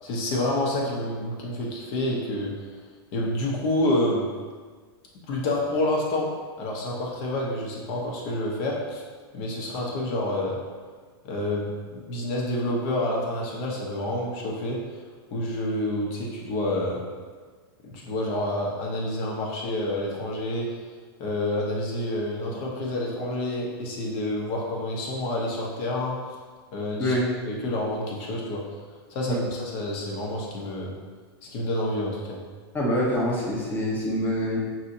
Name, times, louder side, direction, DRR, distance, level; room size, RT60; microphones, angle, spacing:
voice 1, 0.0-2.5 3.1-4.3 5.3-6.3 6.6-9.0 9.3-10.6 11.2-14.8 15.3-17.0 17.8-20.7 21.2-26.2 26.7-27.1 27.5-28.6 29.1-30.9 31.4-32.4, left 1 dB, 45° left, -2 dB, 1.1 m, -28 dB
voice 2, 32.7-34.6, equal, 15° left, -4 dB, 1.0 m, -25 dB
6.0 x 2.9 x 2.7 m, 1.5 s
hypercardioid pair, 130°, 13 cm